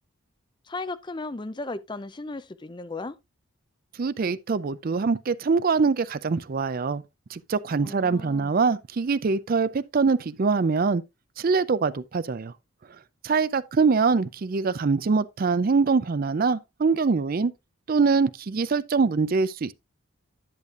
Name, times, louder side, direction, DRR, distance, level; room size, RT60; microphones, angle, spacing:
voice 1, 0.7-3.2 7.8-8.5, left 2 dB, 20° left, 0.5 m, -35 dB
voice 2, 4.0-7.0 7.3-11.0 11.4-12.5 13.2-17.5 17.9-19.7, right 4 dB, 40° right, 0.4 m, -23 dB
10.5 x 8.1 x 2.5 m
head